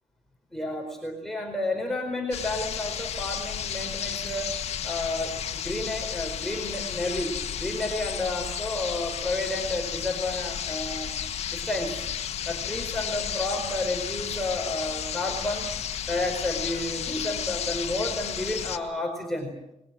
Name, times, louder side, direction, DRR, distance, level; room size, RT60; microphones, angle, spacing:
voice 1, 0.5-4.5 4.8-11.1 11.5-12.0 12.4-15.7 16.1-19.5, left 2 dB, ahead, 0 dB, 4.7 m, -31 dB
sound 1, 2.3-18.8, left 9 dB, 65° left, 1.9 m, -33 dB
29.0 x 21.5 x 7.6 m, 0.86 s
cardioid pair, 140°, 11 cm